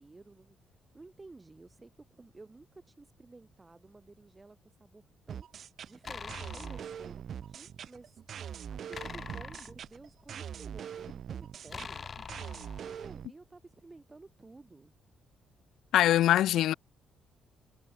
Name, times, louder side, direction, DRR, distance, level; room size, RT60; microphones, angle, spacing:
voice 1, 0.0-5.5 5.9-12.1 12.8-14.9, right 3 dB, 20° right, 4.8 m, -53 dB
sound 1, 5.3-13.3, right 9 dB, 60° right, 0.6 m, -42 dB
sound 2, 6.0-6.9 8.9-10.4 11.7-13.1, left 5 dB, 40° left, 5.2 m, -44 dB
voice 2, 15.9-16.7, left 13 dB, 80° left, 0.6 m, -23 dB
cardioid pair, 90°, 0 cm